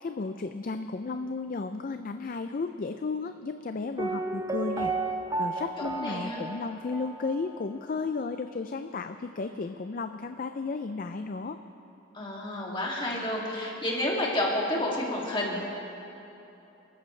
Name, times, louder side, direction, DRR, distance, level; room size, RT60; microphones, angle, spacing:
voice 1, 0.0-4.9 5.4-11.6, left 4 dB, 45° left, 8 dB, 0.4 m, -34 dB
Piano, 4.0-7.8 8.0-8.1, right 3 dB, 15° right, 0.6 m, -33 dB
voice 2, 6.0-6.4 12.1-15.6, left 1 dB, 25° left, -3 dB, 2.4 m, -30 dB
27.5 x 13.5 x 3.3 m, 2.9 s
head